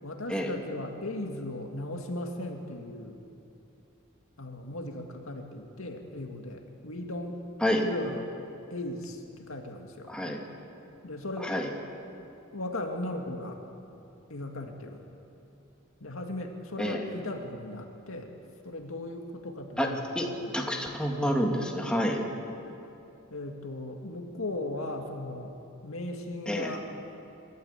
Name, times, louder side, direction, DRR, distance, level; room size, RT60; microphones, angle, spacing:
voice 1, 0.0-3.2 4.4-7.4 7.8-8.3 8.7-10.1 11.0-11.5 12.5-13.6 14.3-15.1 16.0-18.3 18.6-20.4 23.3-25.5 25.8-26.9, left 1 dB, 75° left, 3 dB, 2.1 m, -37 dB
voice 2, 10.1-10.4 11.4-11.7 16.8-17.0 19.8-19.9 20.2-20.3 20.5-22.2 26.5-26.7, equal, 5° left, 0 dB, 2.1 m, -28 dB
26.5 x 13.0 x 8.2 m, 2.7 s
head